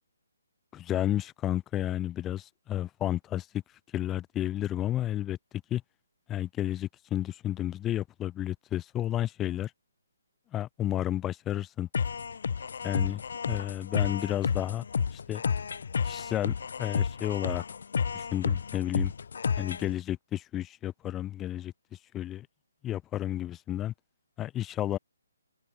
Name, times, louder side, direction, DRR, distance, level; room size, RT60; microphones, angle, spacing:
voice 1, 0.7-3.5 3.9-5.4 5.7-5.8 6.3-9.7 10.5-11.9 12.8-13.2 13.5-14.8 15.1-15.4 16.0-17.6 18.1-19.1 19.6-22.5 22.8-23.9 24.4-25.0, left 12 dB, 15° left, 0.7 m, -32 dB
sound 1, 11.9-19.9, left 6 dB, 50° left, 0.3 m, -31 dB
figure-of-eight pair, 140°, 0 cm